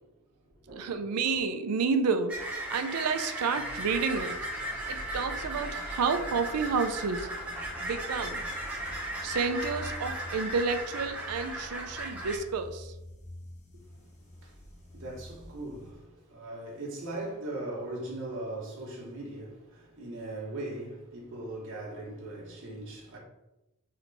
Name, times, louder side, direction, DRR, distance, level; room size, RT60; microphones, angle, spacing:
voice 1, 0.8-4.4 4.9-7.3 7.8-8.5 9.2-12.9, right 5 dB, 85° right, 0.4 m, -30 dB
sound 1, 2.3-12.4, right 1 dB, 5° right, 0.8 m, -36 dB
sound 2, 3.5-15.9, left 1 dB, 30° left, 0.7 m, -47 dB
voice 2, 14.9-15.9 16.3-19.5 20.0-23.2, right 2 dB, 60° right, 1.1 m, -39 dB
3.3 x 2.9 x 3.9 m
head